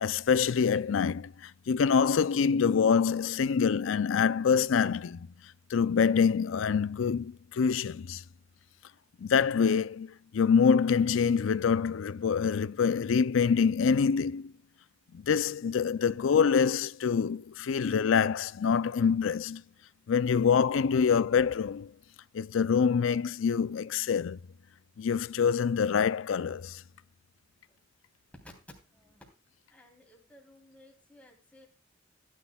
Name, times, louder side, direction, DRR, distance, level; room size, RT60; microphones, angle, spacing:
voice 1, 0.0-5.3 5.7-8.2 9.2-14.5 15.1-19.6 20.1-21.9 22.3-24.4 25.0-26.8, left 6 dB, 90° left, 0.4 m, -26 dB
voice 2, 28.9-29.3 29.7-31.7, left 1 dB, 5° left, 3.4 m, -56 dB
15.5 x 10.5 x 2.3 m
head